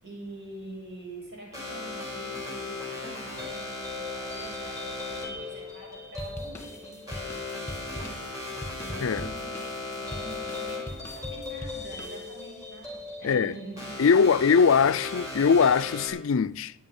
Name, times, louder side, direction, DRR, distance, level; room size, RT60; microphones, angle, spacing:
voice 1, 0.0-8.2 8.8-13.9, right 1 dB, 50° right, 6.4 m, -45 dB
sound 1, 1.5-16.1, left 3 dB, 15° right, 6.0 m, -37 dB
sound 2, 6.2-12.7, left 1 dB, 10° left, 2.0 m, -42 dB
voice 2, 14.0-16.7, left 6 dB, 65° left, 0.4 m, -21 dB
16.0 x 10.5 x 5.4 m
head